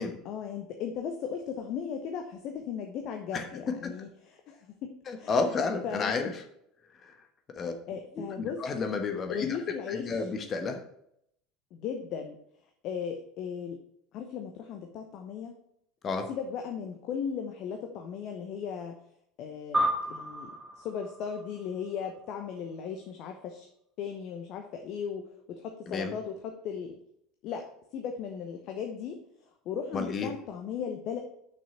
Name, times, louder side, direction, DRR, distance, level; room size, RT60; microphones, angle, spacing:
voice 1, 0.2-5.4 5.8-6.2 7.6-8.6 9.3-10.3 11.7-12.4 12.8-13.8 14.1-15.6 16.3-19.0 19.4-23.7 24.0-27.0 27.4-29.2 29.6-31.2, left 7 dB, 50° left, 4 dB, 1.0 m, -37 dB
voice 2, 5.1-6.3 7.0-7.2 7.6-7.7 8.4-9.6 9.9-10.8 16.0-16.3 25.9-26.1 29.9-30.3, left 4 dB, 35° left, 7 dB, 1.2 m, -31 dB
sound 1, 19.7-22.5, right 1 dB, 15° right, 2.5 m, -33 dB
7.0 x 6.2 x 6.0 m, 0.73 s
figure-of-eight pair, 70°, 0 cm